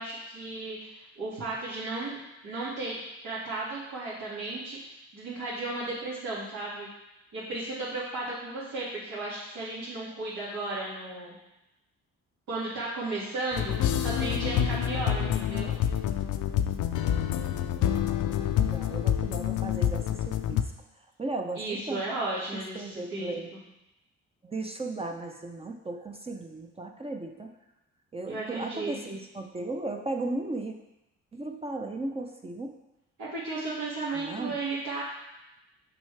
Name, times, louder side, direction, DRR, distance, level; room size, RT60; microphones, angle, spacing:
voice 1, 0.0-2.2 2.4-3.0 3.2-4.8 5.1-6.9 7.3-11.4 12.5-15.7 21.6-23.6 28.3-29.1 33.2-35.0, right 2 dB, 80° right, -11 dB, 2.2 m, -34 dB
sound 1, 13.5-20.6, left 10 dB, 80° left, 0.5 m, -27 dB
voice 2, 17.8-20.7 21.2-22.0 22.5-23.5 24.4-27.5 28.1-30.7 31.3-32.8 34.1-34.5, right 2 dB, 20° right, 3 dB, 0.6 m, -36 dB
6.1 x 5.5 x 3.3 m, 0.93 s
cardioid pair, 90°, 30 cm